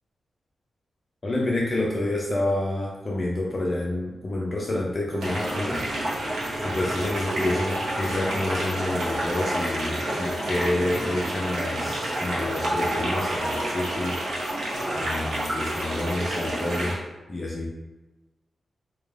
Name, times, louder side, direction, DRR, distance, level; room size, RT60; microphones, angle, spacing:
voice 1, 1.2-5.8 6.6-14.2 14.9-17.0 17.3-17.7, left 1 dB, 30° left, -4 dB, 0.3 m, -28 dB
sound 1, 5.2-17.0, right 1 dB, 70° right, 0.7 m, -29 dB
2.3 x 2.2 x 3.1 m, 1.1 s
wide cardioid pair, 170°, 0 cm